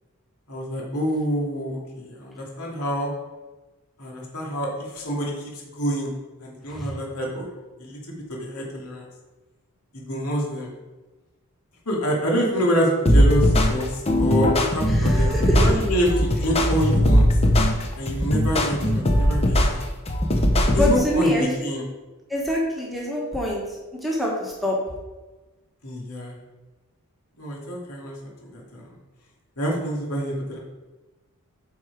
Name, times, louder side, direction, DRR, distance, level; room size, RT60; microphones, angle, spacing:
voice 1, 0.5-3.1 4.0-6.1 6.4-7.5 7.8-8.0 8.3-9.0 9.9-10.7 11.9-17.3 18.0-19.8 20.7-21.8 25.8-26.3 27.4-28.9 29.6-30.6, equal, 85° left, -2 dB, 2.4 m, -27 dB
sound 1, 13.1-21.0, equal, 25° left, 0.8 m, -19 dB
voice 2, 14.8-15.7 20.7-21.7 22.3-23.7 23.9-24.8, equal, ahead, -3 dB, 1.5 m, -24 dB
8.9 x 4.8 x 4.8 m, 1.2 s
head